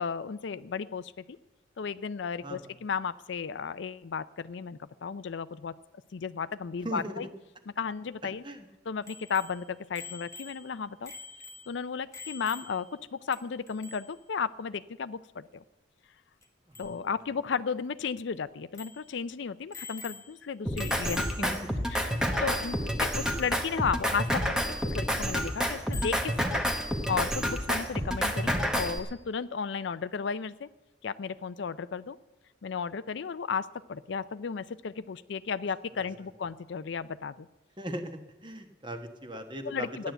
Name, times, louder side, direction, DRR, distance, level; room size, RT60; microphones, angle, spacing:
voice 1, 0.0-1.4 1.8-5.7 6.1-7.3 7.8-8.4 8.9-11.1 11.7-12.9 13.1-15.6 16.8-21.5 21.9-26.6 27.1-30.7 31.0-32.2 32.6-37.5 39.7-40.1, left 6 dB, 65° left, 15 dB, 0.4 m, -34 dB
voice 2, 2.4-2.7 6.8-7.2 8.4-8.7 16.7-16.9 21.2-21.7 23.2-23.4 35.9-36.1 37.8-40.1, right 1 dB, 25° right, 5 dB, 1.2 m, -39 dB
Bicycle bell, 9.1-13.0 13.3-13.4 13.7-14.2 16.4-16.5 16.8-17.0 17.5-17.6 18.0-18.1 18.7-19.1 19.7-20.5 20.8-21.6 23.4-23.5 25.9-26.3, left 5 dB, 15° left, 1.3 m, -46 dB
Drum kit, 20.6-29.0, equal, 5° right, 1.1 m, -29 dB
14.5 x 10.5 x 7.9 m, 1.0 s
head